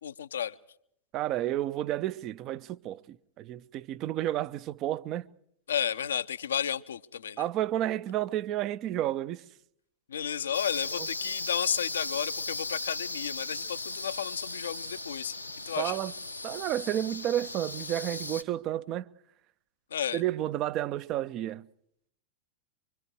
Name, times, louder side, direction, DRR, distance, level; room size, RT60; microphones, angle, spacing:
voice 1, 0.0-0.6 5.7-7.4 10.1-15.3 15.7-16.0 19.9-20.2, left 9 dB, 65° left, 0.9 m, -32 dB
voice 2, 1.1-5.3 7.4-9.4 15.8-16.1 16.4-19.1 20.1-21.7, right 13 dB, 35° right, 0.8 m, -31 dB
sound 1, 10.5-18.4, left 2 dB, 85° left, 1.3 m, -37 dB
25.5 x 25.0 x 4.8 m
figure-of-eight pair, 90°, 0 cm